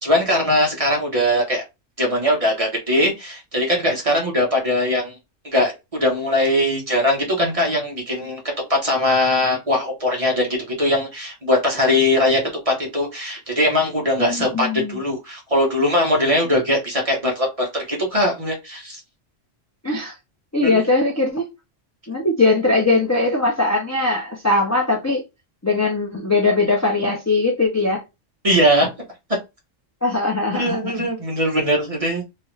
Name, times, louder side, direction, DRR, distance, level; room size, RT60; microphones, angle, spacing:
voice 1, 0.0-1.6 2.0-5.1 5.5-8.4 8.7-19.0 20.7-20.8 28.4-28.9 30.5-32.2, left 1 dB, 30° right, 1.1 m, -20 dB
voice 2, 14.2-15.0 19.8-20.2 20.5-21.5 22.1-25.2 25.6-28.0 30.0-31.1, left 3 dB, 20° left, 0.5 m, -20 dB
3.0 x 2.4 x 3.1 m
omnidirectional pair, 1.3 m